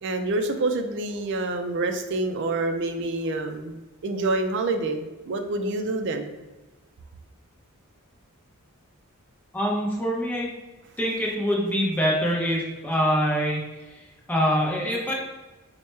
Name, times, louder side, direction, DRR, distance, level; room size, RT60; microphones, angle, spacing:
voice 1, 0.0-6.3, right 2 dB, 55° right, 6 dB, 0.4 m, -27 dB
voice 2, 9.5-10.5 11.0-13.6 14.3-15.1, equal, 10° left, -3 dB, 0.7 m, -24 dB
4.5 x 2.1 x 3.2 m, 1.1 s
head